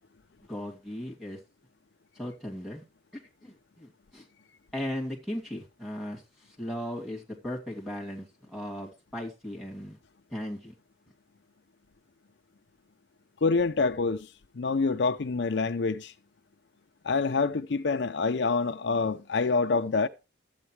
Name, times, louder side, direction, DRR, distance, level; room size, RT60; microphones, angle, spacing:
voice 1, 0.5-1.4 2.1-2.8 3.1-4.2 4.7-10.0 10.3-10.7, left 1 dB, ahead, 2.6 m, -37 dB
voice 2, 13.4-14.3 14.5-16.1 17.0-20.1, left 4 dB, 65° left, 0.5 m, -26 dB
12.5 x 8.3 x 3.2 m
head